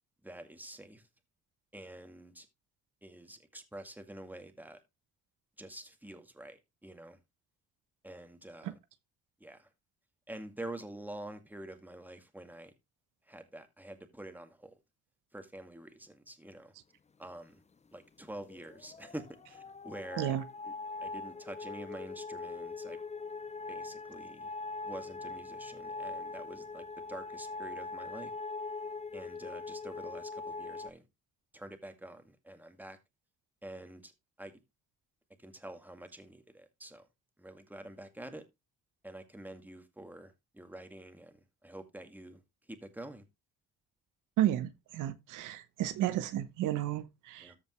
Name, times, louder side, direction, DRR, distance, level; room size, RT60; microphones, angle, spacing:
voice 1, 0.2-1.1 1.7-2.5 3.0-4.8 5.6-7.2 8.0-8.8 9.4-9.7 10.3-12.7 13.3-14.7 15.3-16.7 17.2-17.6 17.9-20.4 20.6-20.7 21.0-23.0 23.7-24.5 24.8-28.3 29.1-31.0 31.5-33.0 33.6-34.1 34.4-34.5 35.4-37.1 37.4-38.4 39.0-42.4 42.7-43.2 47.4-47.6, right 1 dB, 5° right, 2.0 m, -47 dB
sound 1, 18.4-30.9, left 3 dB, 20° left, 0.6 m, -42 dB
voice 2, 44.4-47.5, right 12 dB, 90° right, 1.0 m, -32 dB
14.0 x 5.2 x 3.1 m
cardioid pair, 90°, 30 cm